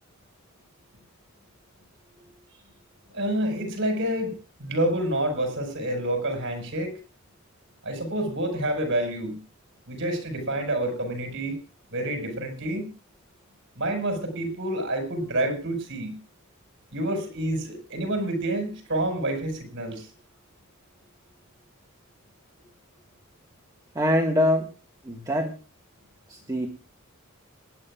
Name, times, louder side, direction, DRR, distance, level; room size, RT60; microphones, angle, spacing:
voice 1, 3.1-4.3 4.6-7.0 7.8-9.4 9.9-11.6 11.9-12.9 13.8-16.2 16.9-20.1, right 1 dB, 60° right, 5 dB, 5.3 m, -28 dB
voice 2, 23.9-24.7 25.0-25.6 26.3-26.7, left 1 dB, 15° right, 0 dB, 1.7 m, -24 dB
27.0 x 11.0 x 2.4 m, 0.32 s
head